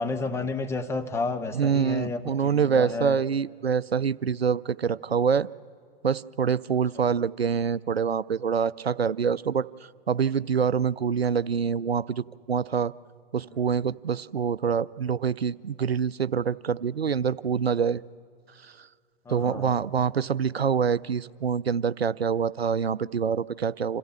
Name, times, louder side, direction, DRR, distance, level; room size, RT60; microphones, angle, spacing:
voice 1, 0.0-3.2 6.9-7.1 19.3-19.8, left 3 dB, 10° left, 5 dB, 0.8 m, -31 dB
voice 2, 1.5-5.5 6.0-9.7 10.1-12.9 13.3-18.0 19.3-24.0, right 6 dB, 85° right, 19 dB, 0.5 m, -25 dB
26.5 x 15.0 x 8.6 m, 2.2 s
figure-of-eight pair, 105°, 30 cm